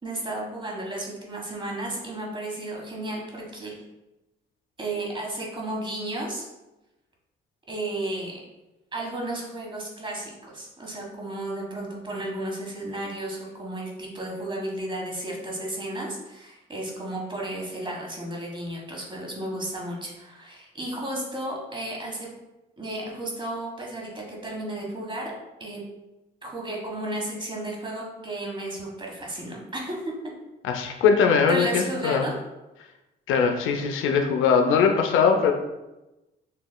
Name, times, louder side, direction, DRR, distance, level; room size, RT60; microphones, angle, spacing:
voice 1, 0.0-3.7 4.8-6.5 7.7-8.4 8.9-22.3 22.8-25.3 25.6-25.8 26.4-30.1 30.7-30.9 31.5-32.3, right 1 dB, 25° right, -2 dB, 1.4 m, -33 dB
voice 2, 30.6-32.2 33.3-35.5, left 6 dB, 85° left, 4 dB, 0.5 m, -21 dB
6.5 x 3.0 x 2.2 m, 1.0 s
cardioid pair, 90°, 20 cm